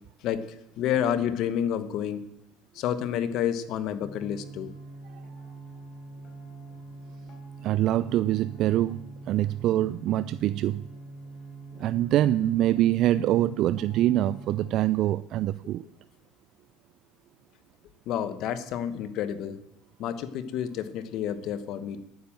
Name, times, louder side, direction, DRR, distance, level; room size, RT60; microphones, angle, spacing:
voice 1, 0.2-2.3 2.7-4.7 18.1-19.6 20.0-22.0, left 9 dB, 65° left, 12 dB, 1.2 m, -29 dB
sound 1, 4.0-14.6, right 3 dB, 45° left, 5.3 m, -44 dB
voice 2, 7.6-10.8 11.8-15.8, right 13 dB, 60° right, 15 dB, 0.3 m, -24 dB
10.5 x 9.5 x 7.3 m, 0.80 s
supercardioid pair, 100°, 0 cm